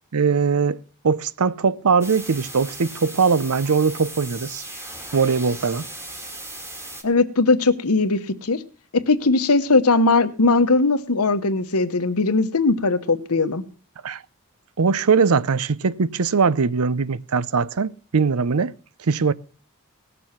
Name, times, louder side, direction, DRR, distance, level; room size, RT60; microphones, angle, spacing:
voice 1, 0.1-4.6 5.1-5.9 14.0-14.2 14.8-18.7 19.0-19.3, right 5 dB, 80° right, 0.6 m, -21 dB
sound 1, 2.0-7.0, right 1 dB, 10° right, 2.1 m, -37 dB
voice 2, 7.0-8.6 8.9-13.6, left 3 dB, 85° left, 1.1 m, -19 dB
18.5 x 7.0 x 5.8 m
head